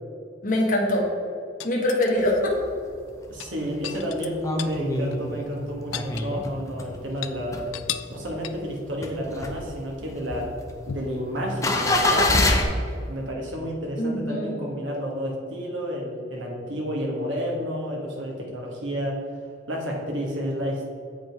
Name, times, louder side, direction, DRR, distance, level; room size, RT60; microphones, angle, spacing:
voice 1, 0.4-1.0 1.6-2.6 14.0-14.6, left 1 dB, 40° left, -2 dB, 1.1 m, -23 dB
sound 1, 1.6-2.4 3.3-4.8 5.1-5.2 5.5-6.7 7.1-7.4 7.7-8.2 8.4-8.8 10.9-11.2 12.9-13.0, left 11 dB, 80° left, 0.4 m, -36 dB
sound 2, 2.2-2.8 3.3-3.4 3.5-7.0 7.3-8.3 8.7-12.6, left 2 dB, 15° left, 0.6 m, -26 dB
voice 2, 3.3-7.7 8.1-10.5 10.9-12.5 13.1-19.2 19.7-21.0, equal, 70° right, -2 dB, 1.5 m, -30 dB
7.4 x 5.3 x 4.6 m, 2.4 s
head